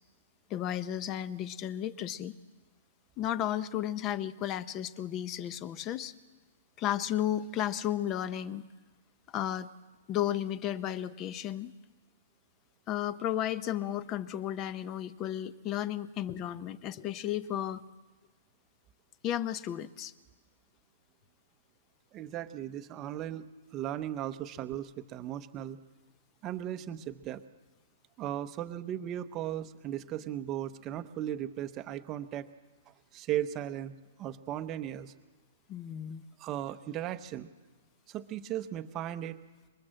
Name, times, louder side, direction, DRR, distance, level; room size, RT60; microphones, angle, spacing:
voice 1, 0.5-2.3 3.2-6.1 6.8-8.6 9.3-9.7 10.1-11.7 12.9-17.8 19.2-20.1 35.7-36.2, left 11 dB, 20° left, 16 dB, 0.7 m, -33 dB
voice 2, 22.1-25.8 26.4-27.4 28.2-32.5 32.9-33.9 34.2-35.1 36.4-37.5 38.1-39.4, right 11 dB, 20° right, 8 dB, 0.8 m, -37 dB
26.5 x 23.5 x 7.7 m, 1.3 s
hypercardioid pair, 165°, 0 cm